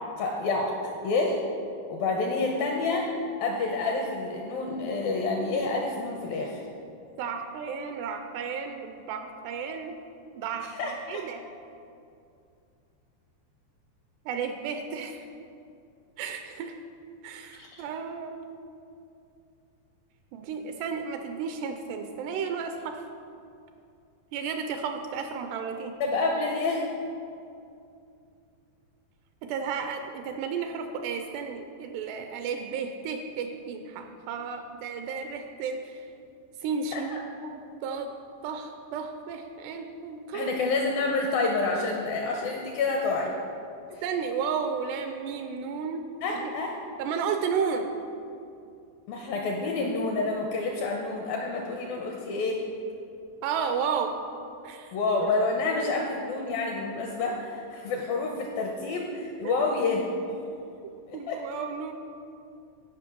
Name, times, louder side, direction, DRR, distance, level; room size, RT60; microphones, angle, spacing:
voice 1, 0.2-0.7 1.0-1.4 1.9-3.1 3.4-6.6 10.8-11.2 17.6-17.8 26.0-26.9 36.9-37.0 40.3-43.3 43.9-44.0 46.2-46.7 49.1-52.6 54.9-60.0 60.3-60.4 61.1-61.4, left 3 dB, 80° left, 1 dB, 2.1 m, -28 dB
voice 2, 7.2-10.0 10.4-11.4 14.3-15.3 16.2-16.8 17.2-18.6 20.3-23.0 24.3-25.9 29.4-36.0 36.6-37.1 37.5-38.1 38.4-40.6 44.0-46.0 46.3-46.5 47.0-47.9 53.4-54.2 54.6-54.9 55.2-55.3 61.1-61.9, right 6 dB, 80° right, 6 dB, 2.5 m, -33 dB
15.5 x 5.5 x 6.0 m, 2.5 s
omnidirectional pair, 5.1 m